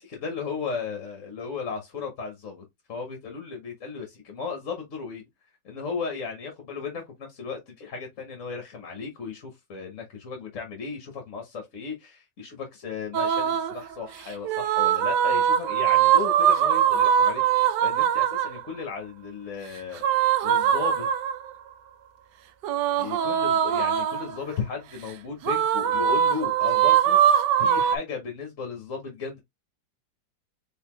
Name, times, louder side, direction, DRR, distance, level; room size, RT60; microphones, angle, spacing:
voice 1, 0.0-5.2 5.6-21.1 23.0-29.4, left 5 dB, 50° left, 1.2 m, -35 dB
sound 1, 13.1-13.8 14.4-18.6 20.0-21.5 22.6-24.3 25.4-28.0, right 9 dB, 75° right, 1.1 m, -22 dB
4.0 x 3.6 x 3.0 m
omnidirectional pair, 2.0 m